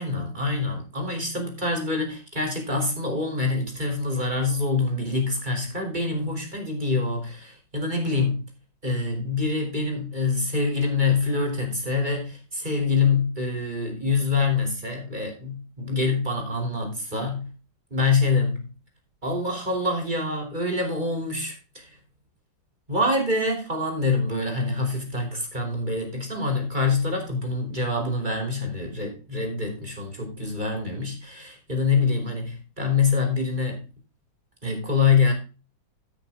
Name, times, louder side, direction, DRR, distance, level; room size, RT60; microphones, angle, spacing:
voice 1, 0.0-8.4 8.8-17.5 17.9-18.7 19.2-21.9 22.9-33.8 34.6-35.3, left 3 dB, 20° right, 3.2 m, -25 dB
14.5 x 6.2 x 3.5 m
omnidirectional pair, 2.1 m